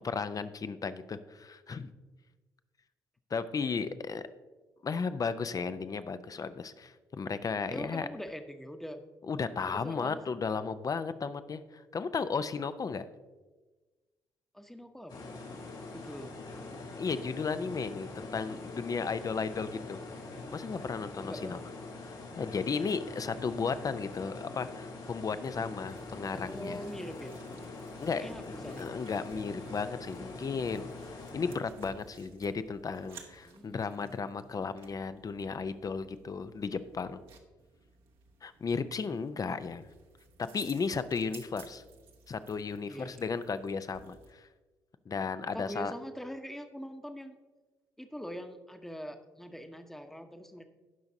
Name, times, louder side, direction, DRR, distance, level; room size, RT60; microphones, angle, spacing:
voice 1, 0.0-1.9 3.3-4.2 4.8-8.1 9.3-13.0 17.0-20.0 20.5-21.6 22.4-26.8 28.0-28.4 28.8-30.9 31.3-37.2 38.4-39.9 40.5-41.8 42.3-44.5 45.1-45.9, left 5 dB, 40° left, 12 dB, 0.6 m, -34 dB
voice 2, 7.7-9.0 9.7-10.2 14.5-15.3 15.9-16.4 21.2-21.6 26.3-27.4 28.1-28.9 33.4-34.0 42.9-43.2 45.5-47.4 48.0-50.6, equal, 5° left, 6 dB, 1.0 m, -43 dB
sound 1, 15.1-31.6, left 3 dB, 55° left, 2.4 m, -44 dB
sound 2, 25.9-44.3, right 5 dB, 65° right, 1.2 m, -57 dB
17.0 x 5.8 x 2.8 m, 1.3 s
hypercardioid pair, 45°, 10 cm